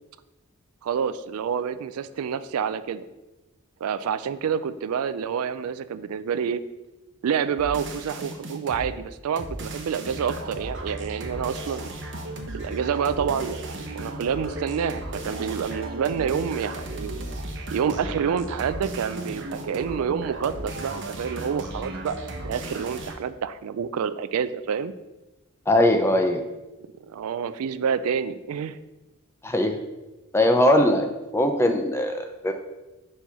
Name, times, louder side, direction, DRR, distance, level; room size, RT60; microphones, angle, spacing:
voice 1, 0.8-3.0 3.8-6.6 7.2-11.9 12.5-17.3 17.7-24.9 26.8-28.8, right 7 dB, 80° right, 13 dB, 0.3 m, -28 dB
sound 1, 7.6-8.9 9.4-23.1, right 2 dB, 55° right, 0.8 m, -35 dB
voice 2, 25.7-26.4 29.4-29.8 30.3-31.1 31.3-32.5, left 1 dB, 10° left, 6 dB, 0.4 m, -20 dB
4.5 x 4.5 x 5.4 m, 1.0 s
head